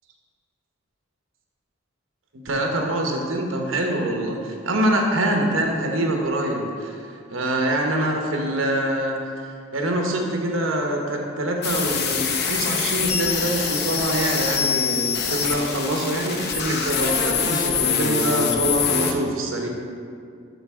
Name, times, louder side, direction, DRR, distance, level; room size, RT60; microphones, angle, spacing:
voice 1, 2.4-7.0 7.3-9.2 9.7-19.7, right 1 dB, 75° right, 1 dB, 1.0 m, -24 dB
sound 1, 11.6-19.1, left 6 dB, 55° left, 0.6 m, -24 dB
11.5 x 4.0 x 3.6 m, 2.3 s
head